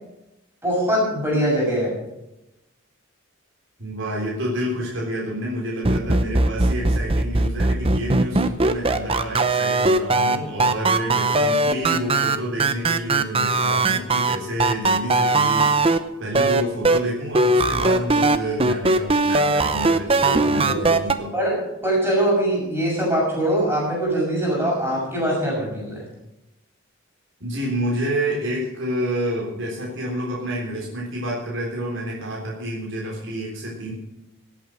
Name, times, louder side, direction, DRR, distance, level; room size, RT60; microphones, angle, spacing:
voice 1, 0.6-1.9 20.2-20.8 21.3-26.0, right 1 dB, 10° right, -4 dB, 6.4 m, -22 dB
voice 2, 3.8-15.7 16.2-21.3 27.4-33.9, equal, 65° right, -3 dB, 3.8 m, -29 dB
sound 1, 5.8-16.0 16.3-17.0 17.3-21.1, right 2 dB, 25° right, 0.7 m, -19 dB
18.0 x 8.7 x 6.2 m, 0.92 s
head